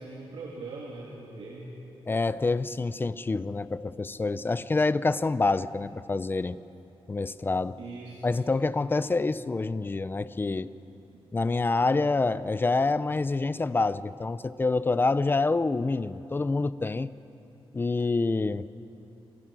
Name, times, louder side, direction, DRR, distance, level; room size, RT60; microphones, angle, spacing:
voice 1, 0.0-1.8 7.7-8.4, right 3 dB, 90° right, -3 dB, 3.1 m, -41 dB
voice 2, 2.1-6.6 7.1-7.8 8.2-10.7 11.3-17.1 17.7-18.7, left 3 dB, 25° left, 15 dB, 0.6 m, -27 dB
29.0 x 26.0 x 6.3 m, 2.9 s
wide cardioid pair, 155°, 9 cm